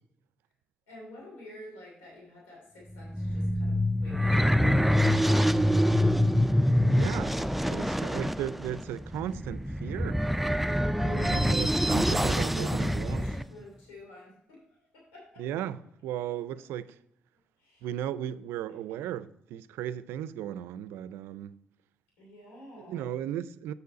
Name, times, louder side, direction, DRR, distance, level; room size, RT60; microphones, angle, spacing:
voice 1, 0.9-6.1 10.7-11.5 12.0-15.4 17.6-17.9 22.2-23.1, left 1 dB, 85° left, 2.7 m, -50 dB
sound 1, 2.9-13.4, equal, 5° right, 0.3 m, -25 dB
voice 2, 6.9-7.4 7.7-10.2 11.0-13.3 15.4-17.0 17.8-21.6 22.8-23.7, right 10 dB, 80° right, 0.4 m, -36 dB
6.8 x 6.8 x 3.9 m
supercardioid pair, 55°, 4 cm